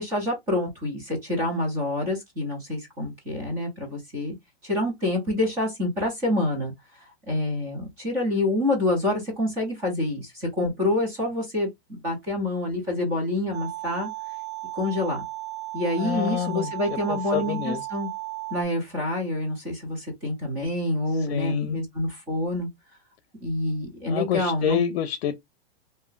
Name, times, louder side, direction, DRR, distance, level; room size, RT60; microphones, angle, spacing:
voice 1, 0.0-4.4 4.6-6.7 7.3-14.1 14.7-15.2 15.7-18.1 18.5-22.7 23.4-24.8, left 1 dB, 10° right, 0.5 m, -27 dB
sound 1, 13.5-18.6, right 20 dB, 35° right, 1.2 m, -35 dB
voice 2, 16.0-16.7 17.1-17.9 21.3-21.8 24.1-25.4, left 10 dB, 80° left, 0.6 m, -27 dB
2.7 x 2.5 x 3.6 m
supercardioid pair, 180°, 31 cm